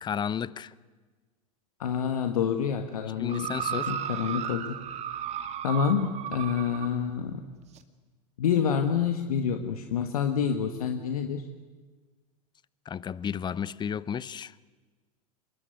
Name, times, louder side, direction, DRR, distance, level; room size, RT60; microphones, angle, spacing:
voice 1, 0.0-0.7 3.2-3.9 12.9-14.5, left 8 dB, 25° left, 0.7 m, -33 dB
voice 2, 1.8-4.8 5.6-7.4 8.4-11.4, left 7 dB, 75° left, 1.6 m, -28 dB
sound 1, 3.3-6.9 7.8-7.9, right 9 dB, 35° right, 2.1 m, -34 dB
25.0 x 21.5 x 9.5 m
hypercardioid pair, 90°, 19 cm